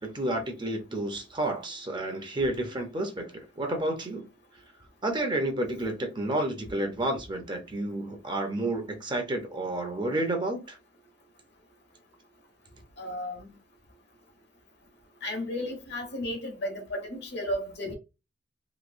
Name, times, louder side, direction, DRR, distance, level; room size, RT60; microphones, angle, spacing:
voice 1, 0.0-4.3 5.0-10.8, right 1 dB, 25° right, 0.7 m, -30 dB
voice 2, 13.0-13.5 15.2-17.9, left 1 dB, 60° left, 1.2 m, -34 dB
3.1 x 2.8 x 2.5 m
head